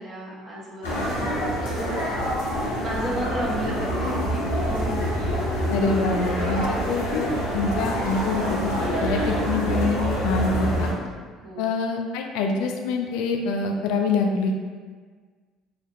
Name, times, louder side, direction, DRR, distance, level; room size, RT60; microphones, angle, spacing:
voice 1, 0.0-2.1 2.4-5.0 11.4-11.7, right 1 dB, 45° right, -6 dB, 1.0 m, -34 dB
sound 1, 0.8-10.9, equal, 85° left, 0.9 m, -26 dB
voice 2, 5.7-7.3 7.5-8.7 9.0-10.9 11.6-14.6, left 4 dB, 70° left, 3 dB, 0.3 m, -25 dB
4.9 x 2.1 x 2.6 m, 1.5 s
hypercardioid pair, 60°, 0 cm